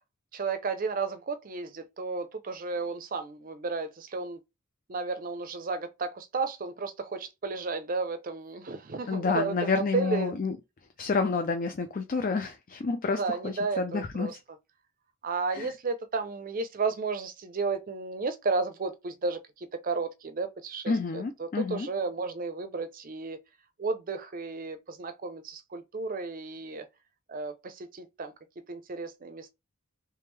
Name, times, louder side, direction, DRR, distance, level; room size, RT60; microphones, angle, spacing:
voice 1, 0.3-4.4 4.9-10.3 13.2-14.4 15.2-23.4 23.8-26.9 27.3-29.5, right 4 dB, 40° right, 0.5 m, -33 dB
voice 2, 9.1-10.6 11.0-14.4 15.5-15.7 20.9-21.9, left 4 dB, 40° left, 0.4 m, -29 dB
3.5 x 3.2 x 3.3 m
head